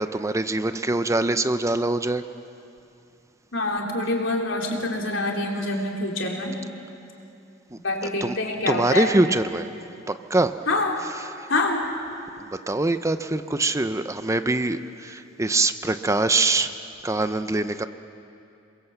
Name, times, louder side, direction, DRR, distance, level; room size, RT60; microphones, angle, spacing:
voice 1, 0.0-2.2 7.7-7.8 8.2-8.3 8.7-9.7 10.1-10.5 11.2-11.5 12.7-16.7 17.0-17.9, right 2 dB, 15° right, 10 dB, 0.6 m, -23 dB
voice 2, 3.5-6.6 7.8-9.1 10.7-11.0 11.5-11.8, left 2 dB, 70° left, 0 dB, 3.7 m, -26 dB
28.0 x 22.0 x 8.1 m, 2.7 s
head